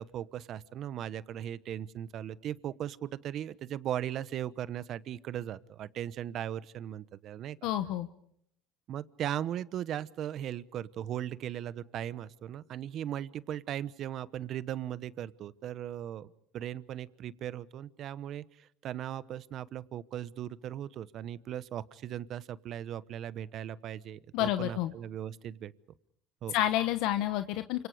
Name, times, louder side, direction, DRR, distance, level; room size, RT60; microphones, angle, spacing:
voice 1, 0.0-7.6 8.9-25.7 26.4-26.5, right 11 dB, 50° right, 17 dB, 1.0 m, -38 dB
voice 2, 7.6-8.1 24.3-24.9 26.5-27.9, left 13 dB, 70° left, 10 dB, 1.1 m, -29 dB
28.5 x 26.0 x 4.9 m, 0.70 s
supercardioid pair, 120°, 0 cm